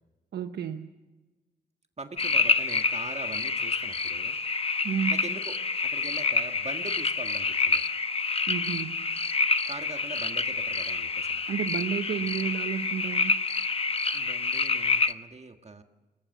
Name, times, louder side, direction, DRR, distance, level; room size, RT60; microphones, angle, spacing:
voice 1, 0.3-0.9 4.8-5.2 8.5-9.0 11.5-13.4, right 8 dB, 90° right, 7 dB, 0.9 m, -31 dB
voice 2, 2.0-4.4 5.1-7.8 9.7-11.4 14.1-15.8, right 3 dB, 40° right, 6 dB, 1.6 m, -42 dB
sound 1, 2.2-15.1, left 4 dB, 35° left, 0.9 m, -28 dB
21.0 x 20.5 x 7.2 m, 1.2 s
cardioid pair, 65°, 17 cm